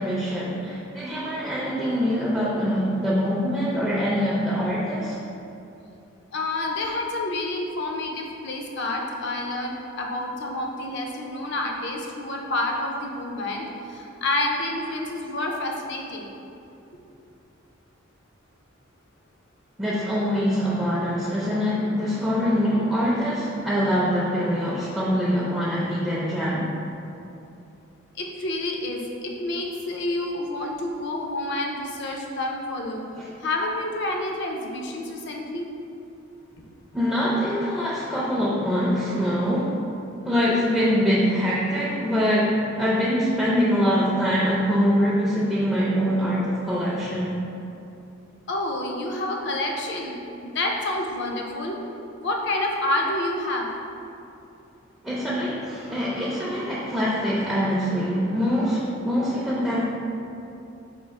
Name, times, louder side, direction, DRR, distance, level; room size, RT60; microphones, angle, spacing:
voice 1, 0.0-5.2 19.8-26.7 36.9-39.8 40.2-47.4 55.0-59.8, equal, 5° right, -8 dB, 0.4 m, -24 dB
voice 2, 6.3-16.3 28.2-33.0 33.4-35.7 48.5-51.8 52.2-53.7, left 2 dB, 60° left, 0 dB, 0.5 m, -28 dB
4.4 x 2.4 x 3.5 m, 2.8 s
head